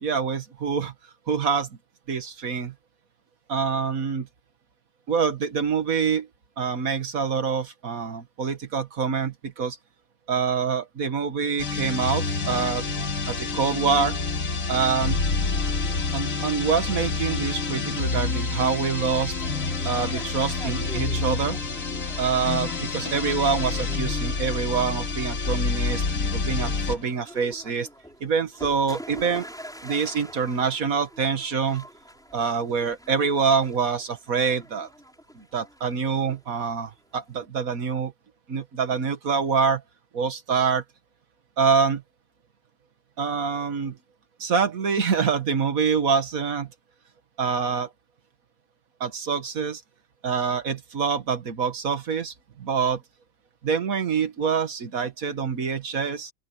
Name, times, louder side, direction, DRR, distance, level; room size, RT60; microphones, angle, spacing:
voice 1, 0.0-0.9 1.3-1.7 2.1-2.7 3.5-4.3 5.1-6.3 6.6-9.8 10.3-12.9 13.3-14.2 14.7-15.2 16.1-19.3 19.8-21.6 22.2-26.0 26.3-27.9 28.2-29.5 29.8-31.9 32.3-34.9 35.4-38.1 38.5-39.8 40.1-40.8 41.6-42.0 43.2-44.0 44.4-46.7 47.4-47.9 49.0-49.8 50.2-53.0 53.6-56.3, right 6 dB, 75° right, 2.1 m, -25 dB
sound 1, 11.6-27.0, left 4 dB, 65° left, 2.2 m, -28 dB
sound 2, 19.3-37.5, equal, ahead, 6.1 m, -46 dB
open air
omnidirectional pair, 1.5 m